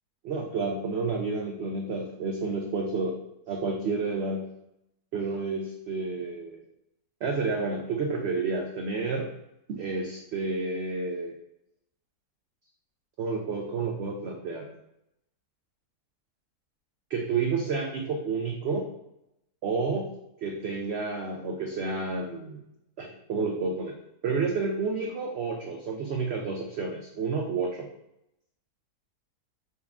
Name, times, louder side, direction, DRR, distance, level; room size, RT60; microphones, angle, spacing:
voice 1, 0.2-3.2 3.5-4.5 5.1-6.6 7.2-9.3 9.7-11.4 13.2-14.7 17.1-18.9 19.6-20.1 20.4-22.6 23.0-23.9 24.2-27.9, right 4 dB, 90° right, 1 dB, 0.5 m, -30 dB
4.2 x 3.4 x 2.4 m, 0.83 s
omnidirectional pair, 1.7 m